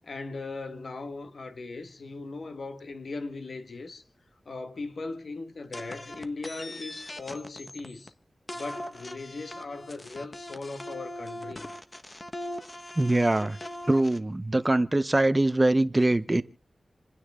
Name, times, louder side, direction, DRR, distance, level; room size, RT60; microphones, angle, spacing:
voice 1, 0.0-4.0 4.4-8.1 8.5-11.7, left 3 dB, 70° left, 1.6 m, -38 dB
sound 1, 5.7-8.1 8.5-14.2, left 1 dB, 25° left, 1.2 m, -40 dB
voice 2, 13.0-13.6 13.9-16.4, right 2 dB, 25° right, 0.7 m, -23 dB
28.5 x 9.7 x 3.7 m
wide cardioid pair, 95°, 0 cm